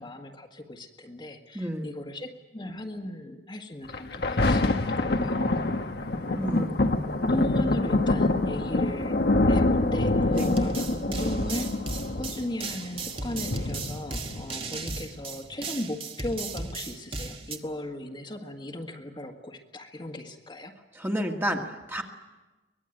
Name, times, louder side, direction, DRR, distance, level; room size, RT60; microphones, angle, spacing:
voice 1, 0.0-5.5 6.2-6.6 7.2-11.7 12.1-20.7, left 1 dB, 25° left, 3 dB, 1.7 m, -37 dB
voice 2, 1.5-1.9 6.4-6.7 10.3-10.5 21.0-22.0, equal, 15° right, 2 dB, 1.9 m, -30 dB
Thunder, 3.9-14.9 15.5-15.6, left 2 dB, 65° left, 1.4 m, -26 dB
sound 1, 10.3-17.6, right 3 dB, 35° right, 1.7 m, -36 dB
23.5 x 19.5 x 9.0 m, 1.2 s
head